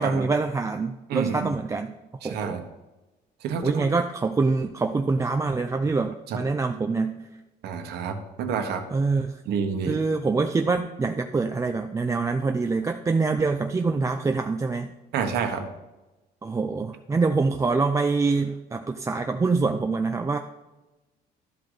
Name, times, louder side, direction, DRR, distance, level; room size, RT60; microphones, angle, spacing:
voice 1, 0.0-1.9 2.2-2.6 3.6-7.2 8.9-9.4 9.9-14.9 16.4-20.4, right 4 dB, 20° right, 5 dB, 0.4 m, -25 dB
voice 2, 1.1-1.5 2.2-2.6 3.4-3.9 6.3-6.4 7.6-8.8 9.5-10.0 15.1-15.6, right 6 dB, 75° right, 5 dB, 1.3 m, -28 dB
12.5 x 5.0 x 4.0 m, 1.1 s
cardioid pair, 110°, 17 cm